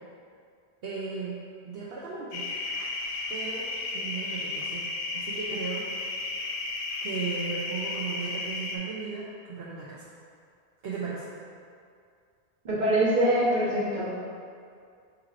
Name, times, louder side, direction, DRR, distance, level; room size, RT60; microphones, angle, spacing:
voice 1, 0.8-1.4 1.6-2.5 3.3-4.9 5.1-5.9 7.0-10.1 10.8-11.3, right 4 dB, 70° right, -7 dB, 0.8 m, -36 dB
sound 1, 2.3-8.8, left 3 dB, 65° left, 0.7 m, -33 dB
voice 2, 12.6-14.2, right 1 dB, 45° right, -7 dB, 1.1 m, -24 dB
5.8 x 3.1 x 2.4 m, 2.3 s
omnidirectional pair, 1.1 m